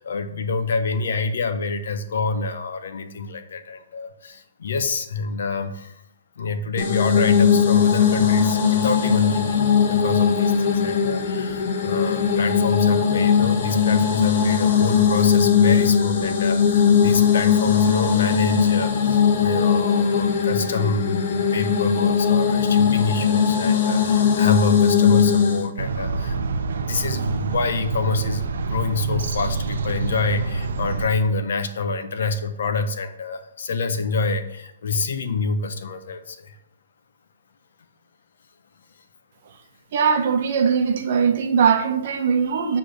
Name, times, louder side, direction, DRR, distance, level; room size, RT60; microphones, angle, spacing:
voice 1, 0.0-6.0 6.4-10.5 10.8-36.6, left 4 dB, 65° left, 0.9 m, -27 dB
sound 1, 6.8-25.7, left 7 dB, 45° left, 1.0 m, -19 dB
sound 2, 25.8-31.1, right 4 dB, 75° right, 0.7 m, -27 dB
voice 2, 39.9-42.8, right 6 dB, 45° right, 0.8 m, -20 dB
8.2 x 3.4 x 6.5 m
hypercardioid pair, 175°, 0 cm